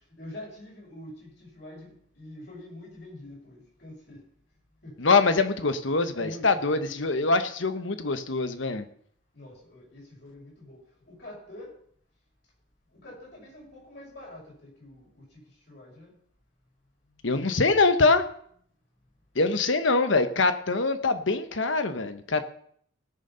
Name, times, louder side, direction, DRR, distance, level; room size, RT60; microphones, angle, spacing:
voice 1, 0.2-4.2 4.8-5.0 6.1-6.9 9.3-10.8 11.1-11.7 12.9-15.4 15.7-16.1, left 1 dB, 55° left, -4 dB, 6.4 m, -45 dB
voice 2, 5.0-8.9 17.2-18.2 19.3-22.4, left 3 dB, 70° left, 10 dB, 1.1 m, -24 dB
18.5 x 6.7 x 5.7 m, 0.63 s
head